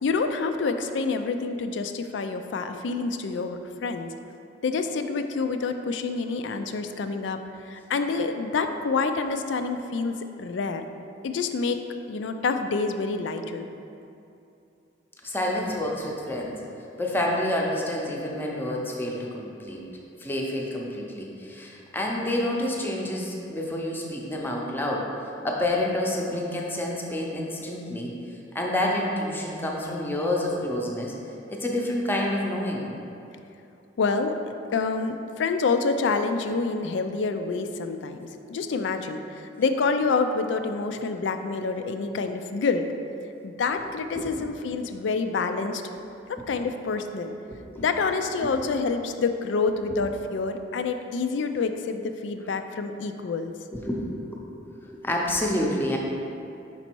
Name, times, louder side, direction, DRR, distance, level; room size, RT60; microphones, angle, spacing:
voice 1, 0.0-4.1 4.6-10.8 11.2-11.8 12.1-13.7 34.0-42.9 43.4-45.8 46.3-47.3 47.8-53.6, left 4 dB, 75° left, 8 dB, 0.4 m, -27 dB
voice 2, 15.2-16.6 17.0-19.8 20.2-25.1 25.4-28.1 28.5-31.1 31.5-32.9 44.2-44.3 47.7-47.8 53.8-54.5 54.9-56.0, left 1 dB, 10° left, -2 dB, 0.6 m, -28 dB
5.3 x 4.0 x 4.5 m, 2.7 s
head